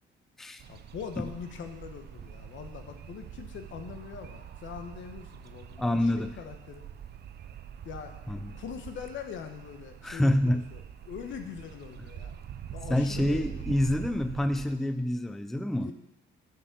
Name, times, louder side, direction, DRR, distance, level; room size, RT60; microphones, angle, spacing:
sound 1, 0.6-14.8, right 9 dB, 55° right, 0.5 m, -44 dB
voice 1, 0.7-6.9 7.8-8.1 8.5-12.4 12.7-13.9 15.8-15.9, left 7 dB, 75° left, 7 dB, 1.0 m, -42 dB
voice 2, 5.8-6.3 8.3-8.6 10.0-10.6 12.9-15.9, left 1 dB, ahead, 9 dB, 0.5 m, -27 dB
7.5 x 6.0 x 6.0 m, 0.92 s
cardioid pair, 90°, 20 cm